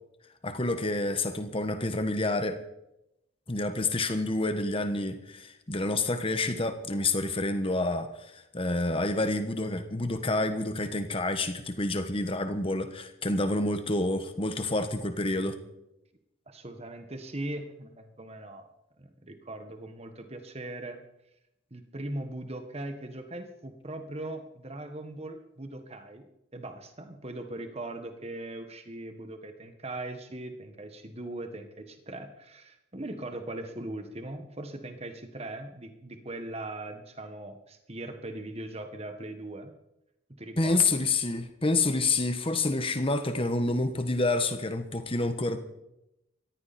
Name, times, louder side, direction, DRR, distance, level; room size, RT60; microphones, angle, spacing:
voice 1, 0.4-2.6 3.5-15.6 40.6-45.6, left 2 dB, 25° left, 8 dB, 1.4 m, -28 dB
voice 2, 16.5-18.7 19.0-21.0 21.7-26.3 26.5-39.7 40.4-41.0, right 1 dB, 30° right, 7 dB, 1.6 m, -40 dB
19.5 x 15.0 x 4.4 m, 0.86 s
head